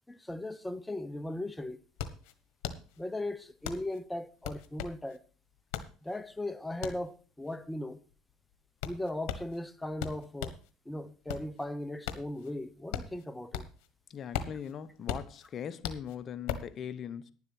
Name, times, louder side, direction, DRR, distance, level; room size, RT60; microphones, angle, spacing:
voice 1, 0.1-1.8 3.0-5.2 6.0-8.0 8.8-10.6 10.9-13.7, left 1 dB, 10° left, 0.8 m, -38 dB
sound 1, 1.0-1.1 1.4-10.7 11.1-13.9 14.2-16.8, left 9 dB, 75° left, 1.4 m, -39 dB
voice 2, 14.1-17.3, left 8 dB, 50° left, 0.8 m, -40 dB
10.5 x 7.3 x 5.9 m
supercardioid pair, 85°, 0 cm